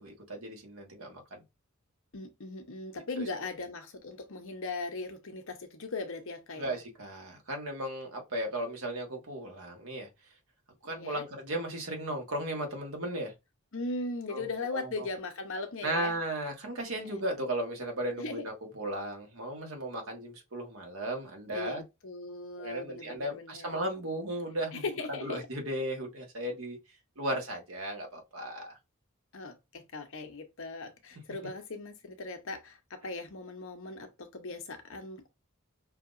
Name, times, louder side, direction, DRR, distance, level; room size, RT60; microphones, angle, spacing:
voice 1, 0.0-1.4 3.2-3.3 6.6-10.1 10.8-13.3 14.3-15.1 15.8-21.8 22.6-26.8 27.2-28.8, right 1 dB, 70° right, 1.5 m, -36 dB
voice 2, 2.1-6.8 10.9-11.2 13.7-16.2 18.2-18.4 21.5-23.8 24.7-25.4 29.3-35.3, left 3 dB, 65° left, 0.9 m, -39 dB
5.8 x 2.8 x 2.6 m
head